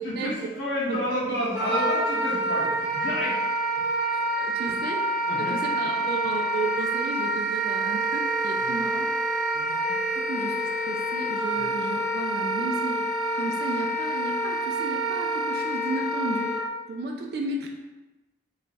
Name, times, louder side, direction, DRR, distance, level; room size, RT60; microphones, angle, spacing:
voice 1, 0.0-3.4 5.2-6.0 9.5-9.7 11.5-11.6, equal, 75° left, -6 dB, 1.3 m, -30 dB
Wind instrument woodwind instrument, 1.5-16.6, right 1 dB, 10° right, 0.8 m, -27 dB
voice 2, 4.1-5.1 5.4-9.1 9.9-13.1 13.3-16.5 16.9-17.7, right 3 dB, 55° right, 1 dB, 0.3 m, -33 dB
3.1 x 2.3 x 3.9 m, 1.1 s
head